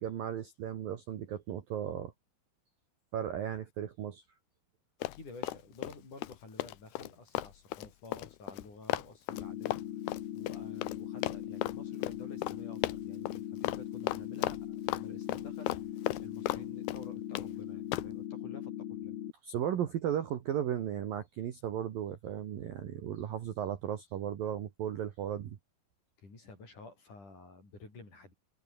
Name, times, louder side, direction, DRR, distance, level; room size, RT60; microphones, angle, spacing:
voice 1, 0.0-2.1 3.1-4.2 19.4-25.6, right 10 dB, 60° right, 2.8 m, -35 dB
Run, 5.0-5.9 6.2-11.0 11.2-11.8 12.0-12.2 12.4-12.6 12.8-13.4 13.6-13.8 14.1-15.0 15.3-16.6 16.9-17.5 17.9-18.1, left 16 dB, 85° left, 2.3 m, -35 dB
voice 2, 5.1-9.8 10.3-15.8 16.2-19.2 26.2-28.3, left 3 dB, 40° left, 9.3 m, -51 dB
sound 1, 9.3-19.3, left 12 dB, 60° left, 3.0 m, -40 dB
omnidirectional pair, 5.9 m